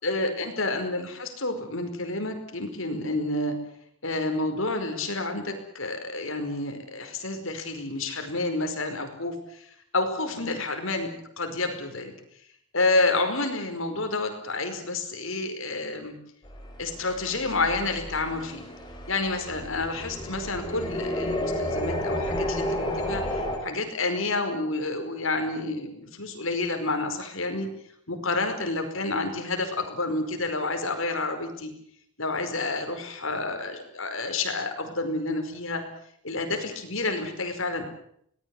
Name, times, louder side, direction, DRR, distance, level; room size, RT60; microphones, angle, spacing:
voice 1, 0.0-3.6 4.0-9.7 9.9-11.1 11.4-12.1 12.7-16.2 16.8-18.7 19.1-27.7 28.1-31.7 32.2-35.8 36.2-37.9, left 2 dB, 65° left, 6 dB, 5.1 m, -29 dB
sound 1, 16.5-23.6, left 1 dB, 20° left, 5.3 m, -31 dB
26.0 x 19.5 x 7.9 m, 0.68 s
head